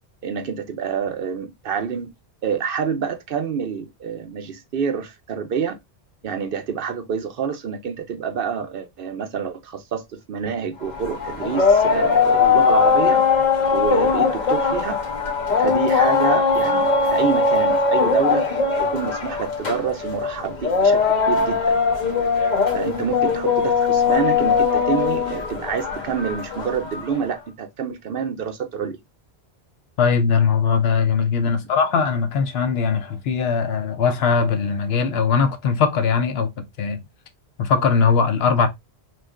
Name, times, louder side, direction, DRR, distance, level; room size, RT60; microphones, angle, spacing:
voice 1, 0.2-2.1 2.4-5.8 6.2-13.2 13.7-15.0 15.6-18.5 18.8-21.8 22.7-29.0 31.5-31.6, right 7 dB, 65° right, 0.8 m, -27 dB
sound 1, 10.8-27.2, left 5 dB, 45° left, 0.9 m, -20 dB
voice 2, 30.0-37.0 37.6-38.7, left 5 dB, 75° left, 0.9 m, -20 dB
3.2 x 2.4 x 3.5 m
omnidirectional pair, 1.1 m